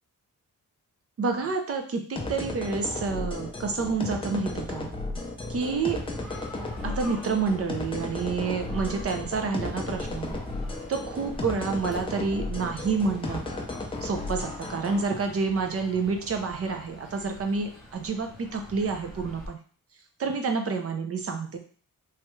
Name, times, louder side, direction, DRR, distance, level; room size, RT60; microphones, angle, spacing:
voice 1, 1.2-4.9 5.5-6.0 6.8-10.4 10.9-13.4 14.0-19.6 20.2-21.6, right 4 dB, 45° right, 4 dB, 0.5 m, -29 dB
sound 1, 2.2-15.0, left 2 dB, 15° left, 0.4 m, -34 dB
sound 2, 5.5-19.5, equal, ahead, 0.8 m, -45 dB
3.2 x 2.3 x 3.0 m, 0.43 s
wide cardioid pair, 150°, 34 cm